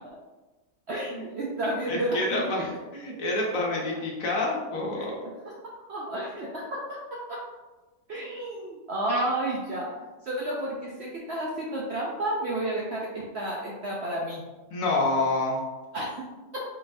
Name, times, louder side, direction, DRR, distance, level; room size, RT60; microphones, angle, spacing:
voice 1, 0.9-2.5 5.0-5.3 5.9-7.4 8.1-14.4 15.9-16.3 16.5-16.6, right 1 dB, 60° right, -3 dB, 0.7 m, -31 dB
voice 2, 1.9-5.2 14.7-15.6, left 2 dB, 60° left, -2 dB, 1.1 m, -28 dB
4.4 x 4.0 x 2.6 m, 1.2 s
omnidirectional pair, 1.7 m